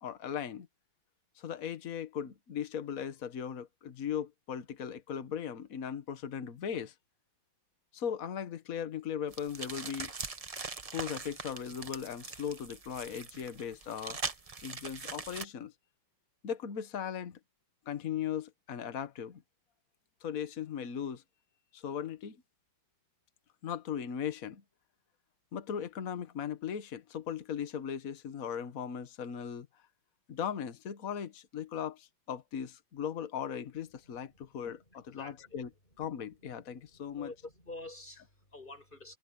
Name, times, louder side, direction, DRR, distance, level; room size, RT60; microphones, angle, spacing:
voice 1, 0.0-0.7 1.4-6.9 7.9-10.1 10.9-14.2 14.6-15.7 16.4-17.4 17.8-19.4 20.2-21.2 21.7-22.4 23.6-24.6 25.5-29.7 30.3-35.7 36.0-37.3, left 8 dB, 45° left, 1.6 m, -38 dB
sound 1, 9.3-15.4, right 4 dB, 30° right, 0.6 m, -42 dB
voice 2, 34.9-35.6 36.8-39.2, left 2 dB, 25° left, 7.1 m, -48 dB
omnidirectional pair, 2.2 m